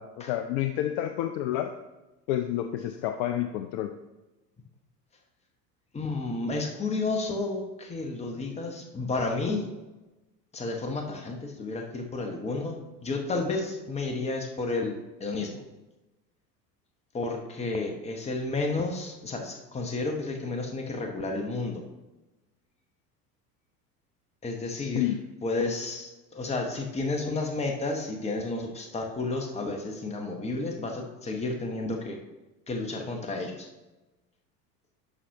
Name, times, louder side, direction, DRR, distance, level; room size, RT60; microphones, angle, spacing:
voice 1, 0.0-1.7 2.3-3.9 24.7-25.2, left 12 dB, 35° left, 8 dB, 0.4 m, -29 dB
voice 2, 5.9-9.7 10.5-15.5 17.1-21.8 24.4-25.0 25.4-32.2 32.7-33.7, left 3 dB, 15° left, 3 dB, 1.0 m, -31 dB
11.0 x 5.6 x 2.8 m, 1.1 s
figure-of-eight pair, 70°, 49 cm